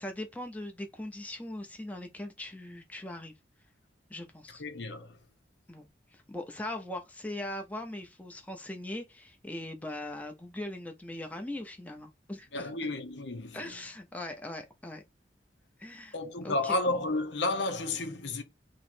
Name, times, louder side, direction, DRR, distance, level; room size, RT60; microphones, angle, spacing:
voice 1, 0.0-3.3 4.1-4.6 5.7-12.7 13.5-15.0 15.8-16.2 16.4-16.8, left 1 dB, 10° left, 0.6 m, -40 dB
voice 2, 4.6-5.2 12.5-13.8 16.1-18.4, left 2 dB, 80° left, 0.8 m, -32 dB
3.1 x 3.0 x 4.3 m
head